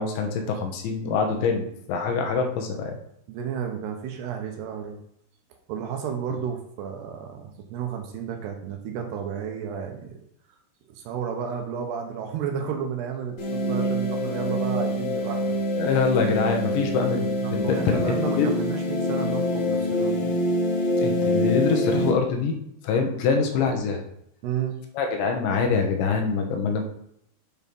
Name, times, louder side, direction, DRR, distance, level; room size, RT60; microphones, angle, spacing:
voice 1, 0.0-3.0 15.8-18.5 21.0-22.5 22.8-24.0 24.9-26.8, left 5 dB, 80° left, 3 dB, 3.4 m, -25 dB
voice 2, 1.3-1.7 3.3-5.0 5.7-10.2 10.9-15.6 17.0-20.3 24.4-24.8, right 8 dB, 75° right, 3 dB, 2.7 m, -32 dB
sound 1, 13.4-22.1, left 1 dB, 55° left, 2.7 m, -25 dB
8.1 x 4.5 x 5.3 m, 0.74 s
omnidirectional pair, 5.1 m